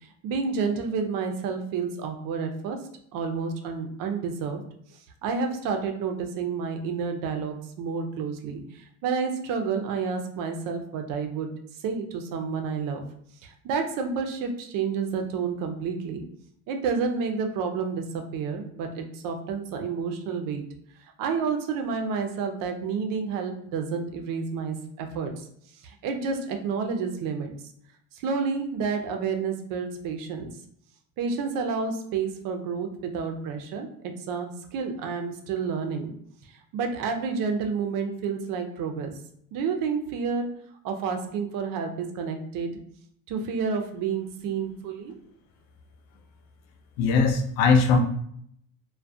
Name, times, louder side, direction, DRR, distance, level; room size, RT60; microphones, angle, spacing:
voice 1, 0.2-2.8 3.1-4.6 5.2-8.6 9.0-11.5 11.8-13.0 13.4-16.3 16.7-20.6 21.2-25.3 25.8-27.5 28.1-30.5 31.2-36.1 36.7-39.1 39.5-40.5 40.8-42.7 43.3-45.1, right 5 dB, 55° right, 5 dB, 0.5 m, -30 dB
voice 2, 47.0-48.0, left 4 dB, 85° left, 5 dB, 0.6 m, -20 dB
2.3 x 2.2 x 2.5 m, 0.67 s
supercardioid pair, 110°, 40 cm